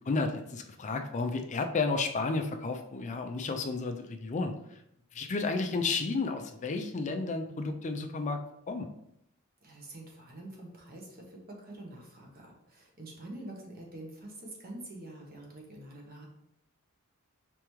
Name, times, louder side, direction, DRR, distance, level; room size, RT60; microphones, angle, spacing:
voice 1, 0.0-4.5 5.1-8.9, left 3 dB, 35° left, 5 dB, 0.4 m, -32 dB
voice 2, 9.6-16.3, right 1 dB, 45° right, 0 dB, 1.1 m, -46 dB
4.8 x 3.4 x 3.1 m, 0.77 s
head